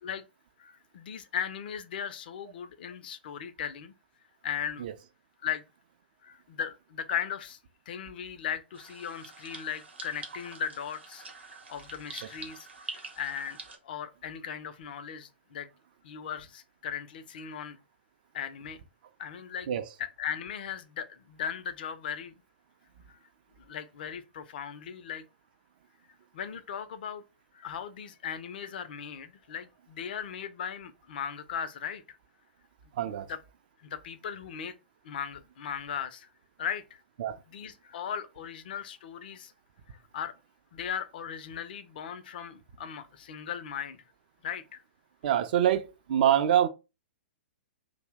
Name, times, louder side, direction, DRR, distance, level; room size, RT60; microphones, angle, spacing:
voice 1, 0.6-3.9 4.4-4.9 5.4-5.6 6.2-7.6 7.9-11.2 11.5-13.6 13.8-15.7 16.0-17.8 18.3-18.8 19.2-19.7 20.0-22.3 23.1-23.2 23.6-25.2 26.3-27.2 27.5-32.2 33.3-33.4 33.8-34.7 35.0-36.3 36.6-37.0 37.5-39.5 39.9-40.3 40.7-44.0 44.4-44.8, left 8 dB, 55° left, 0.4 m, -37 dB
sound 1, 8.7-13.8, right 3 dB, 75° right, 0.8 m, -45 dB
voice 2, 33.0-33.3 37.2-37.4 45.2-46.7, right 10 dB, 50° right, 0.4 m, -25 dB
2.6 x 2.0 x 3.4 m
figure-of-eight pair, 115°, 6 cm